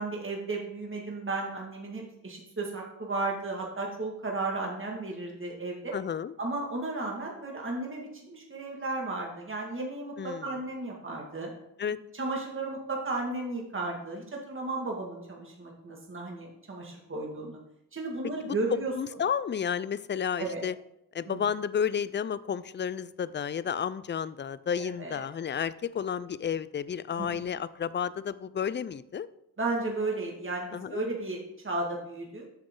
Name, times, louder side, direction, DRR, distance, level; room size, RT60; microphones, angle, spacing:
voice 1, 0.0-5.9 6.4-11.5 12.1-17.6 17.9-18.9 20.4-20.6 21.3-21.4 24.8-25.2 27.2-27.4 29.6-32.5, right 2 dB, 30° right, -1 dB, 2.0 m, -34 dB
voice 2, 5.9-6.3 10.2-10.6 11.8-12.0 18.4-20.7 21.1-29.3 30.7-31.0, left 7 dB, 30° left, 17 dB, 0.4 m, -32 dB
8.2 x 6.5 x 3.8 m, 0.79 s
cardioid pair, 65°, 43 cm